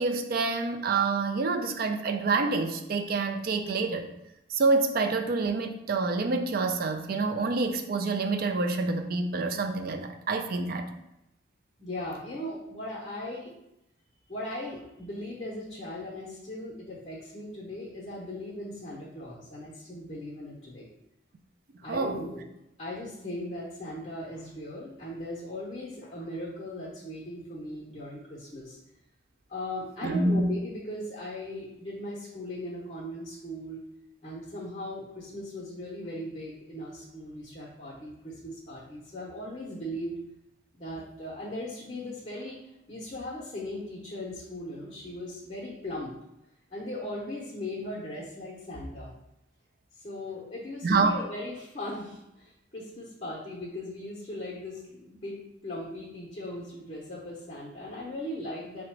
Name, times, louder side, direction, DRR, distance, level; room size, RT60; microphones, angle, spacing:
voice 1, 0.0-4.1 4.5-10.9 21.9-22.2 30.0-30.4 50.8-51.2, right 3 dB, 50° right, 6 dB, 0.4 m, -27 dB
voice 2, 11.8-13.5 14.3-20.9 21.8-22.4 22.8-28.8 29.5-33.8 34.2-40.1 40.7-42.6 42.9-46.1 46.7-49.1 49.9-55.4 55.6-58.8, left 1 dB, 30° left, -6 dB, 0.7 m, -38 dB
3.8 x 2.1 x 4.5 m, 0.85 s
head